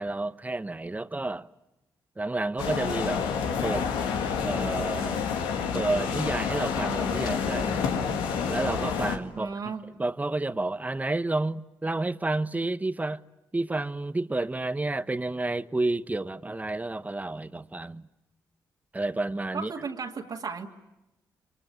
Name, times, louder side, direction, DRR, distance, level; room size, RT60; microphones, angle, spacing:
voice 1, 0.0-1.5 2.2-3.2 3.6-3.9 4.4-5.2 5.7-7.8 8.5-13.2 13.5-18.0 18.9-19.7, right 2 dB, 20° right, 1.0 m, -30 dB
sound 1, 2.6-9.2, left 6 dB, 90° left, 1.9 m, -28 dB
voice 2, 9.3-9.8 19.5-20.7, right 5 dB, 60° right, 2.4 m, -35 dB
28.5 x 23.5 x 8.8 m
supercardioid pair, 55°, 8 cm